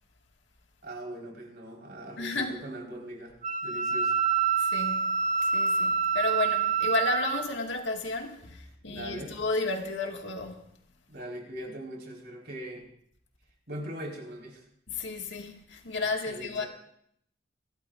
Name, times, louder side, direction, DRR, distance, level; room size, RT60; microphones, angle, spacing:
voice 1, 0.8-3.3 3.6-4.2 8.9-9.3 11.1-12.9 13.7-14.6 16.3-16.7, right 1 dB, 60° right, 4.6 m, -40 dB
voice 2, 2.2-2.6 4.6-5.0 5.4-10.6 14.9-16.6, left 3 dB, 75° left, 1.9 m, -32 dB
Wind instrument woodwind instrument, 3.4-7.5, right 6 dB, 45° right, 0.7 m, -27 dB
27.5 x 13.0 x 2.6 m
head